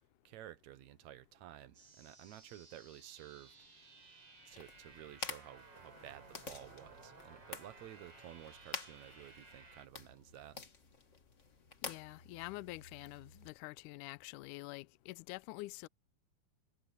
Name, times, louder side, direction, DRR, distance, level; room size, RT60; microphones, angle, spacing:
voice 1, 0.2-3.5 4.5-10.6, right 13 dB, 70° right, 1.8 m, -53 dB
sound 1, 1.7-9.9, right 3 dB, 40° right, 6.8 m, -58 dB
sound 2, 4.5-13.5, left 4 dB, 40° left, 1.0 m, -49 dB
voice 2, 11.8-15.9, left 21 dB, 90° left, 1.8 m, -47 dB
omnidirectional pair, 4.2 m